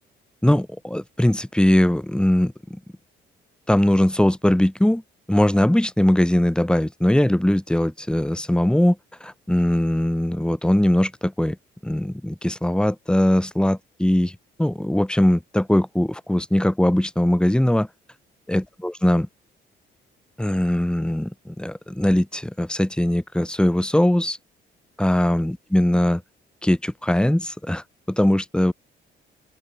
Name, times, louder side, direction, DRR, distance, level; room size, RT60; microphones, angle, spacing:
voice 1, 0.4-2.5 3.7-5.0 5.3-11.6 11.8-17.9 18.5-19.3 20.4-24.4 25.0-26.2 26.6-28.7, left 1 dB, 5° left, 3.1 m, -20 dB
open air
cardioid pair, 90°, 20 cm